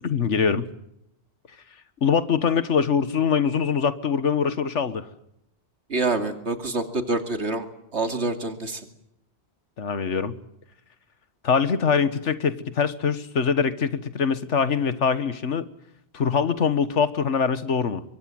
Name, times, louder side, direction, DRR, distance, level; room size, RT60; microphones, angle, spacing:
voice 1, 0.0-0.7 2.0-5.1 9.8-10.4 11.4-15.7 16.1-18.0, left 6 dB, 90° left, 13 dB, 1.7 m, -23 dB
voice 2, 5.9-7.6 7.9-8.8, right 3 dB, 70° right, 7 dB, 2.8 m, -26 dB
25.0 x 23.5 x 7.8 m, 0.80 s
omnidirectional pair, 1.2 m